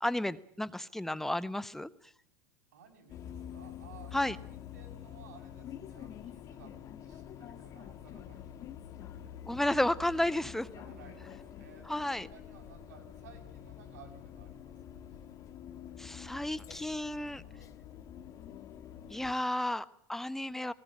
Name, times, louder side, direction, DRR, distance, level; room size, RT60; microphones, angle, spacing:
voice 1, 0.0-1.9 4.1-4.4 9.5-10.7 11.9-12.3 16.0-17.4 19.1-20.7, left 1 dB, 5° left, 15 dB, 1.0 m, -32 dB
voice 2, 2.7-8.7 9.1-9.4 10.7-15.0 16.9-17.7, right 6 dB, 75° right, 4 dB, 7.0 m, -57 dB
sound 1, 3.1-19.3, left 9 dB, 40° left, 1.5 m, -47 dB
19.0 x 18.0 x 8.8 m, 0.63 s
supercardioid pair, 115°, 9 cm